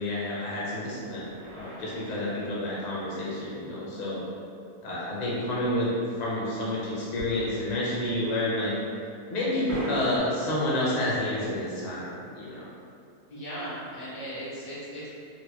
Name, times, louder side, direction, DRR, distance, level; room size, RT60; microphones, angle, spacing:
voice 1, 0.0-4.2 4.8-5.9 6.2-8.8 9.3-12.7, left 1 dB, 40° left, -7 dB, 0.6 m, -29 dB
sound 1, 1.0-3.4 7.2-7.9 8.2-8.3 9.7-10.2, equal, 90° right, 1.4 m, -40 dB
voice 2, 13.3-15.1, equal, 80° left, -10 dB, 1.8 m, -37 dB
4.4 x 2.0 x 2.9 m, 2.4 s
omnidirectional pair, 1.6 m